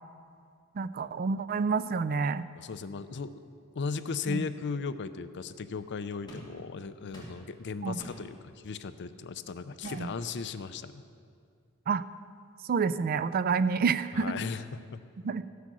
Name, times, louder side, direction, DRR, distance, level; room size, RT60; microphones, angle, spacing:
voice 1, 0.8-2.4 4.3-4.5 7.8-8.0 9.8-10.1 11.9-12.0 12.6-14.4 15.2-15.4, right 5 dB, 40° right, 14 dB, 0.4 m, -28 dB
voice 2, 2.6-3.3 3.8-11.0 14.1-14.6 14.9-15.0, left 5 dB, 55° left, 12 dB, 0.5 m, -36 dB
sound 1, 6.3-6.6 7.1-7.6 8.0-8.4 9.8-10.3, equal, 20° left, 2.7 m, -46 dB
14.5 x 8.2 x 6.2 m, 2.3 s
head